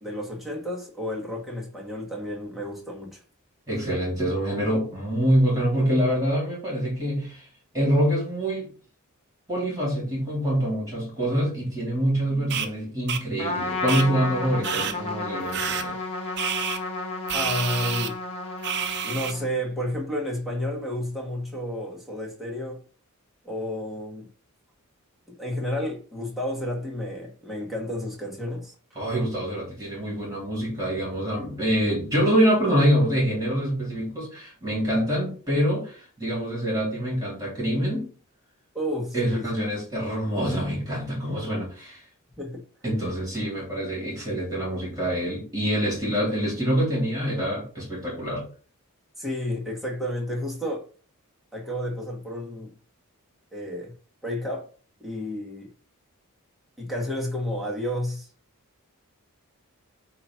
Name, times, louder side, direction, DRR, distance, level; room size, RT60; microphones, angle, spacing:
voice 1, 0.0-3.2 17.3-18.2 19.0-22.8 23.4-24.3 25.3-28.7 38.7-39.5 42.4-42.6 49.2-50.9 51.5-52.7 53.5-53.9 54.2-54.7 55.0-55.7 56.8-58.3, left 1 dB, ahead, 1.8 m, -31 dB
voice 2, 3.7-7.5 7.7-8.7 9.5-15.9 29.0-38.1 39.1-42.0 42.8-48.4, equal, 15° right, 3.8 m, -25 dB
sound 1, 12.5-12.7 13.1-13.2 13.9-14.0 14.6-14.9 15.5-15.8 16.4-16.8 17.3-18.1 18.6-19.3, right 7 dB, 50° right, 0.8 m, -28 dB
Trumpet, 13.4-19.6, left 2 dB, 25° left, 1.5 m, -32 dB
8.3 x 3.0 x 5.8 m
head